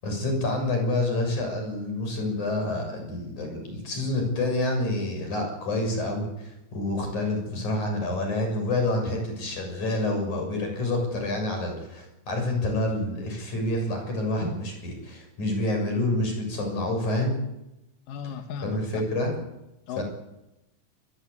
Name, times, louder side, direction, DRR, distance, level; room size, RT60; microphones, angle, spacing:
voice 1, 0.0-17.4 18.6-19.3 20.0-20.1, left 1 dB, 65° left, 3 dB, 8.4 m, -28 dB
voice 2, 18.1-19.0 19.9-20.0, left 6 dB, 90° left, 5 dB, 2.9 m, -36 dB
23.5 x 22.0 x 8.6 m, 0.94 s
omnidirectional pair, 3.7 m